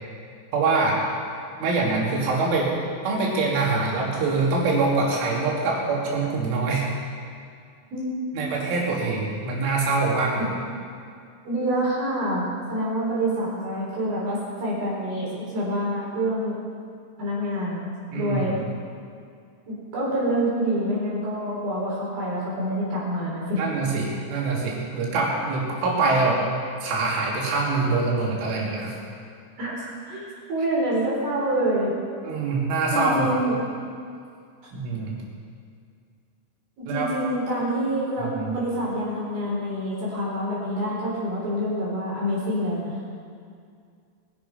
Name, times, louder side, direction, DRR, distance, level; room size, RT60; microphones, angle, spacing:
voice 1, 0.5-1.0 1.6-2.7 3.1-6.9 8.3-10.5 18.1-18.6 23.6-26.5 26.8-29.0 32.2-33.3 34.7-35.2 36.9-37.1 38.2-38.5, right 3 dB, 80° right, -3 dB, 5.4 m, -24 dB
voice 2, 11.4-16.6 17.2-18.6 19.7-23.6 29.6-31.9 32.9-33.6 36.8-42.9, right 1 dB, 50° right, -6 dB, 5.5 m, -27 dB
22.5 x 10.5 x 5.8 m, 2.3 s
omnidirectional pair, 5.6 m